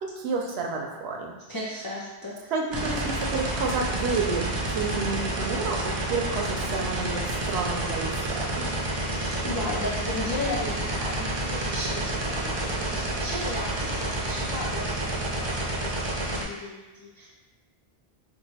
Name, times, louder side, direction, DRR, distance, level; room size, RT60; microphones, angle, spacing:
voice 1, 0.0-1.3 2.5-8.7, right 4 dB, 75° right, 1 dB, 0.8 m, -30 dB
voice 2, 1.5-2.5 9.1-17.3, left 1 dB, 30° left, -7 dB, 0.4 m, -35 dB
sound 1, 2.7-16.4, right 1 dB, 35° right, 0.4 m, -29 dB
3.0 x 2.4 x 4.1 m, 1.1 s
omnidirectional pair, 1.1 m